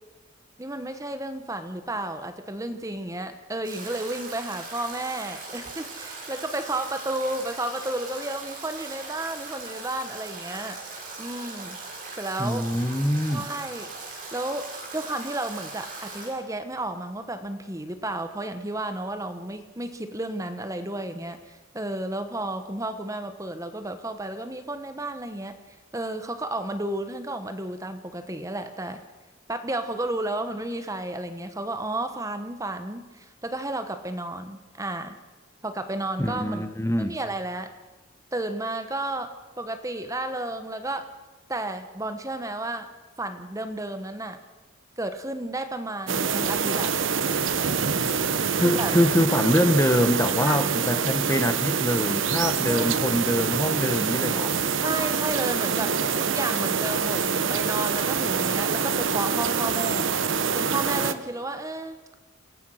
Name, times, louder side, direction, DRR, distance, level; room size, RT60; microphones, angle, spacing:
voice 1, 0.6-10.8 11.2-11.8 12.2-12.7 13.3-13.9 14.3-25.6 25.9-29.0 29.5-35.2 35.6-36.7 37.0-37.7 38.3-41.1 41.5-42.9 43.2-44.4 45.0-46.9 48.5-48.9 50.4-50.9 52.7-53.2 54.8-60.1 60.5-62.0, right 1 dB, 15° right, 8 dB, 1.0 m, -32 dB
Stream / Drip / Trickle dribble, 3.6-16.3, right 3 dB, 40° right, 6.7 m, -39 dB
voice 2, 12.4-13.4 36.2-37.2 48.6-54.5, equal, 15° left, 8 dB, 1.0 m, -24 dB
sound 1, 46.1-61.1, right 6 dB, 65° right, 1.0 m, -25 dB
27.5 x 16.5 x 6.4 m, 1.2 s
head